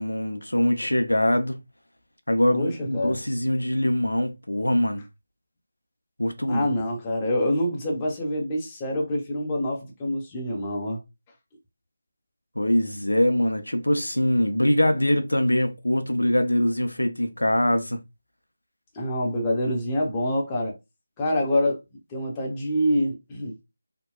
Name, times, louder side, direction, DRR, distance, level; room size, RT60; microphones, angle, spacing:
voice 1, 0.0-1.6 2.3-5.0 6.2-6.7 12.6-18.0, left 1 dB, 85° left, 0.5 m, -23 dB
voice 2, 2.5-3.2 6.5-11.0 18.9-20.8 21.2-21.8 22.1-23.5, left 1 dB, 15° left, 0.7 m, -26 dB
2.7 x 2.1 x 2.2 m
figure-of-eight pair, 160°, 0 cm